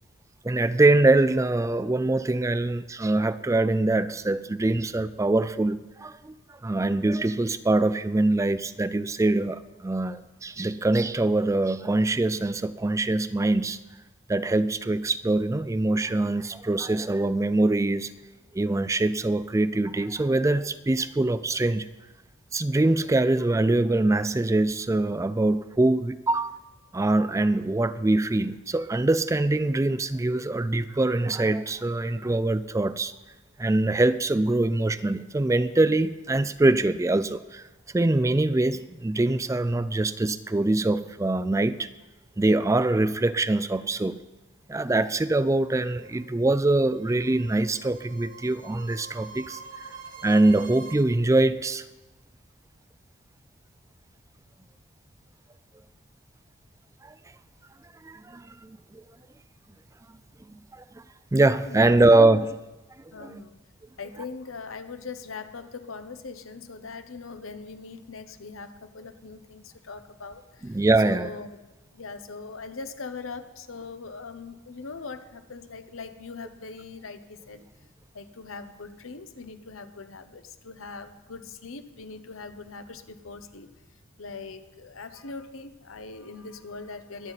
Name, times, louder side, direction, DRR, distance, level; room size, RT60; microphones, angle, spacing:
voice 1, 0.4-6.4 6.6-13.8 14.3-18.1 18.5-21.9 22.5-26.6 26.9-33.1 33.6-37.6 37.9-41.9 42.4-44.2 44.7-49.9 50.2-51.8 57.0-57.1 58.0-59.0 60.5-60.8 61.3-62.5 63.2-63.3 70.7-71.3, right 2 dB, 15° right, 14 dB, 0.4 m, -23 dB
sound 1, 44.9-50.9, right 5 dB, 70° right, 2.3 m, -46 dB
voice 2, 61.7-62.4 63.1-63.6 64.0-70.8 71.0-71.6 71.9-77.6 78.1-83.7 84.2-87.3, left 4 dB, 85° left, 9 dB, 1.0 m, -41 dB
22.5 x 9.2 x 4.1 m, 1.1 s
head